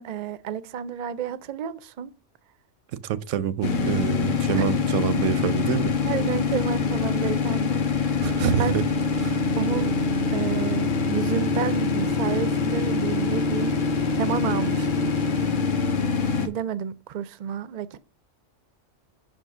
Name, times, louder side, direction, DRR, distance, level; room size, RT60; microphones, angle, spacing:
voice 1, 0.0-2.1 4.5-4.8 6.1-8.1 8.6-8.7 9.5-10.0 10.3-13.8 14.1-15.1 16.4-18.0, right 8 dB, 65° right, 0.4 m, -31 dB
voice 2, 3.0-5.9 8.2-8.8 9.2-9.4, right 10 dB, 90° right, 0.9 m, -26 dB
sound 1, 3.6-16.5, left 4 dB, 50° left, 0.8 m, -24 dB
6.0 x 4.4 x 6.1 m
omnidirectional pair, 1.3 m